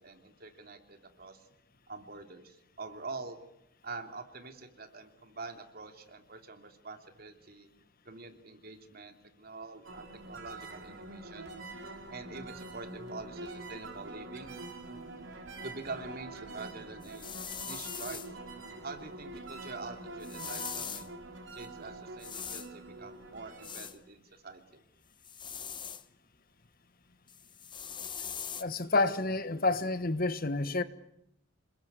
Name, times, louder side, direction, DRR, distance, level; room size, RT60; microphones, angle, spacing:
voice 1, 0.0-1.4 1.9-3.4 3.8-7.7 8.0-11.5 12.1-14.5 15.6-17.3 17.7-18.4 18.8-21.1 21.5-24.8, right 3 dB, 50° right, 3.0 m, -45 dB
sound 1, 9.8-23.9, right 2 dB, 80° right, 5.3 m, -45 dB
sound 2, 17.0-18.3 20.2-21.1 22.2-22.7 23.6-24.0 25.2-26.0 27.3-28.6, left 8 dB, 25° left, 1.0 m, -41 dB
voice 2, 28.6-30.8, left 3 dB, 50° left, 1.4 m, -29 dB
28.0 x 21.5 x 9.5 m
head